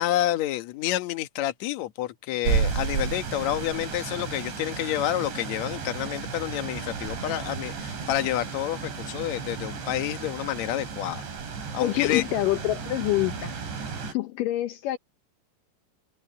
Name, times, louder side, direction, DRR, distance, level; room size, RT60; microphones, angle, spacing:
voice 1, 0.0-11.2 11.7-12.2, left 14 dB, 70° left, 1.7 m, -29 dB
sound 1, 2.4-14.1, right 6 dB, 90° right, 7.1 m, -33 dB
voice 2, 11.8-13.5 14.1-15.0, left 15 dB, 90° left, 1.9 m, -26 dB
omnidirectional pair, 5.0 m